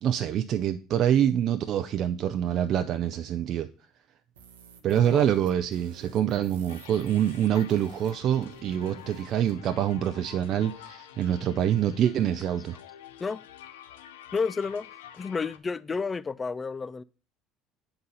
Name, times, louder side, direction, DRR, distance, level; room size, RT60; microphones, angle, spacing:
voice 1, 0.0-3.7 4.8-12.7, right 10 dB, 55° right, 0.4 m, -26 dB
sound 1, 4.3-9.6, right 7 dB, 90° right, 0.9 m, -53 dB
sound 2, 6.7-15.6, left 10 dB, 90° left, 0.6 m, -48 dB
voice 2, 14.3-14.9 15.2-17.0, left 5 dB, 30° left, 0.3 m, -31 dB
7.9 x 4.0 x 5.5 m
hypercardioid pair, 75°, 0 cm